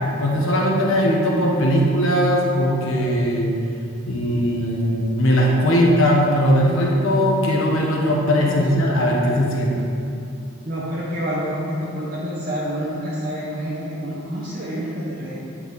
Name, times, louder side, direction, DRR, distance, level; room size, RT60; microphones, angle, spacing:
voice 1, 0.2-3.6 4.1-9.8, equal, 75° left, -2 dB, 1.3 m, -19 dB
voice 2, 8.3-8.6 10.6-15.3, equal, 40° right, -8 dB, 1.2 m, -28 dB
10.0 x 4.5 x 4.1 m, 2.6 s
head